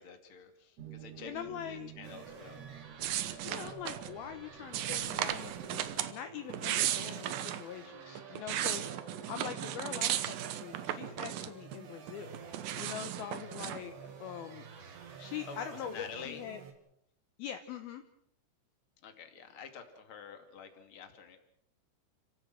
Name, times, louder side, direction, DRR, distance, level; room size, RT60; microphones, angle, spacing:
voice 1, 0.0-1.3 1.6-2.7 8.0-8.2 14.8-15.0 15.5-16.5 19.0-21.4, left 6 dB, 35° left, 6 dB, 2.4 m, -48 dB
sound 1, 0.8-6.0, right 10 dB, 40° right, 2.9 m, -52 dB
voice 2, 1.2-1.9 3.4-12.4 12.8-13.9 14.2-14.6 15.2-16.6 17.4-18.0, left 9 dB, 75° left, 8 dB, 2.3 m, -43 dB
sound 2, 2.0-16.7, right 6 dB, 60° right, 4.4 m, -50 dB
sound 3, 3.0-4.1 4.7-6.1 6.5-7.6 8.2-11.8 12.1-13.8, right 12 dB, 80° right, 2.0 m, -35 dB
30.0 x 16.5 x 6.3 m, 0.74 s
omnidirectional pair, 5.6 m